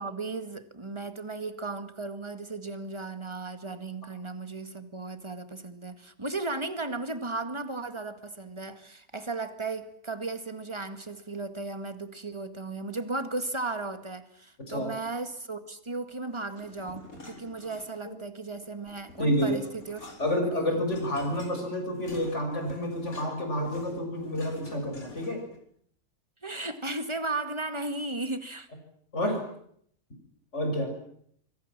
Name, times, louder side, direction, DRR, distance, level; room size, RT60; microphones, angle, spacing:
voice 1, 0.0-20.0 20.4-20.8 26.4-28.7, right 3 dB, 20° right, 10 dB, 1.9 m, -35 dB
sound 1, 16.5-18.2 18.5-25.6, left 2 dB, 60° left, 5.3 m, -48 dB
voice 2, 19.2-19.6 20.2-25.4 29.1-29.4 30.5-30.9, equal, 45° left, 4 dB, 6.9 m, -29 dB
26.5 x 23.5 x 7.5 m, 0.67 s
omnidirectional pair, 1.7 m